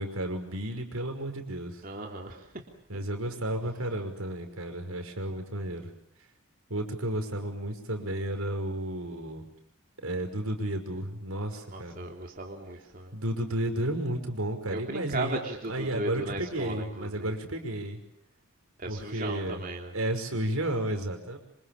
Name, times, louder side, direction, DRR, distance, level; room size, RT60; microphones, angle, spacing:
voice 1, 0.0-1.8 2.9-5.9 6.7-9.5 10.0-12.0 13.1-15.4 15.7-18.0 18.9-19.6 19.9-21.4, right 1 dB, 80° right, 6 dB, 5.6 m, -32 dB
voice 2, 1.8-2.7 11.7-13.1 14.7-17.3 18.8-19.9, right 2 dB, 40° right, 1 dB, 3.2 m, -36 dB
27.0 x 26.5 x 7.4 m, 0.67 s
head